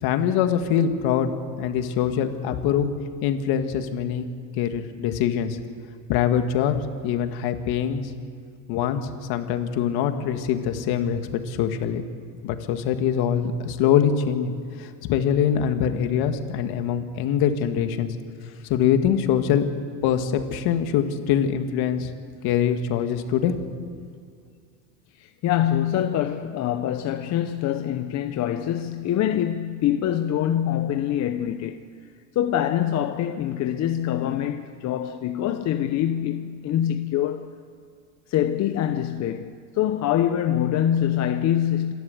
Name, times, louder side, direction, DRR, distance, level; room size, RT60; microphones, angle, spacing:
voice 1, 0.0-2.9 3.2-4.3 4.6-5.6 6.1-8.1 8.7-12.0 12.4-14.5 14.8-18.2 18.7-19.7 20.0-22.1 22.4-23.7, left 8 dB, 55° left, 1.9 m, -23 dB
voice 2, 25.2-31.8 32.3-37.5 38.3-41.9, left 11 dB, 40° left, 0.8 m, -25 dB
27.5 x 12.5 x 8.0 m
supercardioid pair, 135°, 44 cm